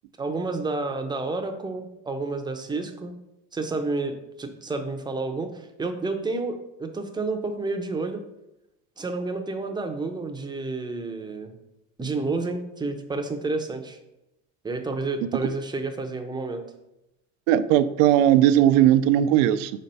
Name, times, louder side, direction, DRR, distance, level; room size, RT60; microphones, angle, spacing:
voice 1, 0.2-3.1 3.5-8.2 9.0-11.5 12.0-14.0 14.6-16.6, right 3 dB, 10° right, 5 dB, 0.6 m, -30 dB
voice 2, 17.5-19.7, right 12 dB, 90° right, 11 dB, 0.6 m, -18 dB
5.7 x 4.4 x 5.4 m, 0.90 s
cardioid pair, 150°, 39 cm